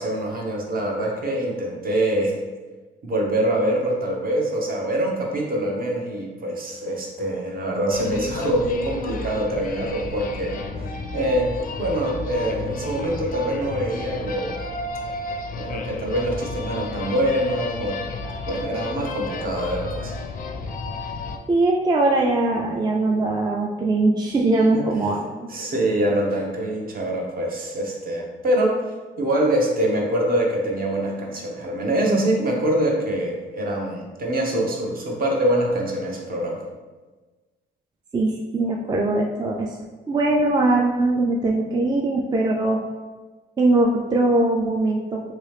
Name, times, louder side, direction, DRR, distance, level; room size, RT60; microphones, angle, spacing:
voice 1, 0.0-2.4 3.0-11.5 11.8-14.6 15.6-18.0 18.5-20.1 24.7-24.9 25.5-28.8 29.2-36.6, right 1 dB, 45° right, -1 dB, 0.8 m, -24 dB
sound 1, 7.9-21.4, left 3 dB, 45° left, 0.4 m, -32 dB
voice 2, 21.5-25.5 38.1-39.8 40.1-42.8 43.6-45.3, right 2 dB, 20° right, -1 dB, 0.3 m, -21 dB
3.0 x 2.7 x 3.2 m, 1.3 s
cardioid pair, 90°, 20 cm